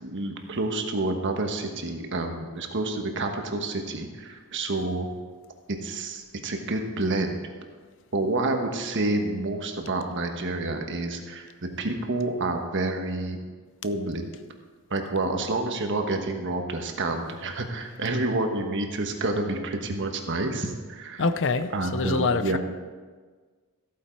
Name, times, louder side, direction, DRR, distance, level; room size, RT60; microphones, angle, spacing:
voice 1, 0.0-5.1 5.7-7.4 8.1-11.5 11.8-13.4 13.8-14.3 14.9-21.2 21.7-22.6, right 2 dB, 55° right, 4 dB, 1.3 m, -28 dB
voice 2, 21.2-22.6, left 4 dB, 60° left, 12 dB, 0.6 m, -25 dB
14.5 x 8.6 x 4.6 m, 1.5 s
head